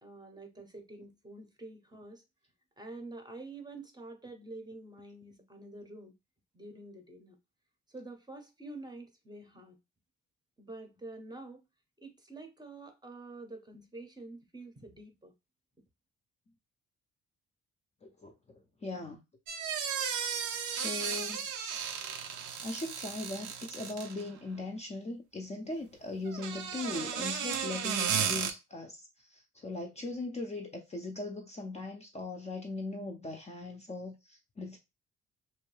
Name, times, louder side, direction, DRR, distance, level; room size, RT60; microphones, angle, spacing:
voice 1, 0.0-2.2 2.8-6.1 6.5-7.4 7.9-9.8 10.6-11.7 12.0-15.3, right 2 dB, 15° right, 0.7 m, -47 dB
voice 2, 18.0-19.2 20.7-21.5 22.6-34.8, left 2 dB, 20° left, 0.5 m, -39 dB
sound 1, 19.5-24.3 26.3-28.5, right 7 dB, 80° right, 0.6 m, -34 dB
2.6 x 2.2 x 3.2 m
cardioid pair, 90°, 30 cm